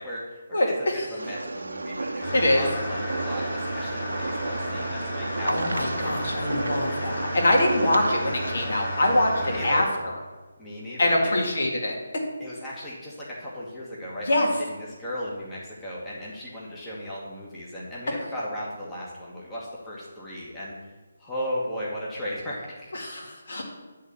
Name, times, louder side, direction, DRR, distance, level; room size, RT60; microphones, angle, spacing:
voice 1, 0.0-0.7 1.1-6.7 9.4-9.8 10.6-11.4 12.4-20.7 21.2-22.9, equal, 10° left, -7 dB, 1.3 m, -36 dB
voice 2, 0.5-1.1 2.3-2.7 5.5-10.1 11.0-12.0 14.3-14.5 22.9-23.6, left 1 dB, 60° left, 0 dB, 2.1 m, -24 dB
sound 1, 1.2-8.5, right 2 dB, 85° right, 0.7 m, -33 dB
sound 2, 2.2-9.8, equal, 25° left, 3.3 m, -32 dB
10.5 x 3.8 x 7.0 m, 1.3 s
figure-of-eight pair, 160°, 0 cm